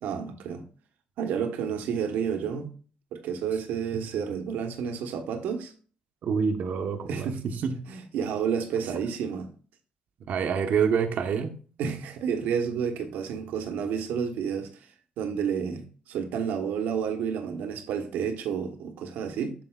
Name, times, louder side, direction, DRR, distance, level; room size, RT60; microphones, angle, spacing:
voice 1, 0.0-0.6 1.2-2.7 3.1-5.7 7.1-7.4 7.9-9.5 11.8-14.7 15.2-19.5, right 7 dB, 90° right, 1.1 m, -30 dB
voice 2, 6.2-7.9 10.3-11.5, right 6 dB, 60° right, 1.1 m, -27 dB
7.9 x 6.9 x 2.4 m
cardioid pair, 120°, 3 cm